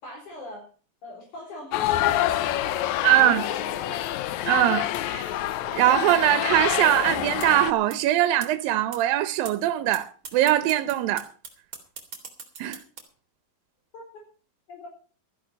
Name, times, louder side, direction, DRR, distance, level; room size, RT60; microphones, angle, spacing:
voice 1, 0.0-0.7 1.0-4.1 13.9-14.0 14.7-14.9, left 2 dB, 60° left, 5.6 m, -40 dB
sound 1, 1.7-7.7, left 13 dB, 75° left, 1.8 m, -27 dB
voice 2, 3.0-3.4 4.5-5.3 5.8-11.3 12.6-12.8, right 13 dB, 85° right, 2.6 m, -22 dB
sound 2, 7.4-7.5 7.9-8.0 8.4-8.5 8.9-9.0 9.4-9.5 9.9-10.0 10.2-13.0, right 6 dB, 40° right, 2.9 m, -38 dB
14.0 x 10.5 x 5.7 m
omnidirectional pair, 4.0 m